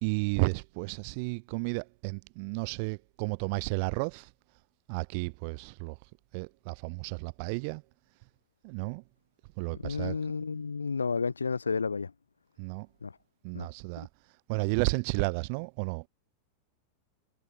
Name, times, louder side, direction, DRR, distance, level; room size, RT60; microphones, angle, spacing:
voice 1, 0.0-4.3 4.9-7.8 8.6-9.0 9.6-10.2 12.6-12.9 13.4-14.1 14.5-16.1, right 34 dB, 45° right, 3.5 m, -32 dB
voice 2, 9.7-12.1 13.0-13.1 13.5-13.7 14.0-14.1, left 5 dB, 75° left, 8.0 m, -32 dB
figure-of-eight pair, 90°, 0 cm